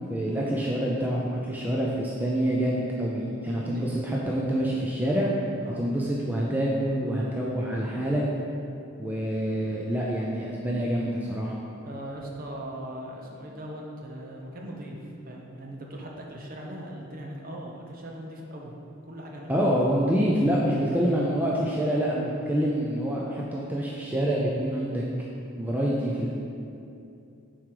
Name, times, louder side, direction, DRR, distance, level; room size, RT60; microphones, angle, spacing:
voice 1, 0.1-5.3 5.8-8.2 9.0-11.5 19.5-25.0 25.6-26.3, equal, 10° right, -4 dB, 0.5 m, -26 dB
voice 2, 3.4-4.2 5.6-5.9 11.8-15.0 15.2-18.7 19.1-19.7, right 1 dB, 40° right, -1 dB, 0.9 m, -39 dB
7.3 x 4.7 x 4.8 m, 2.7 s
head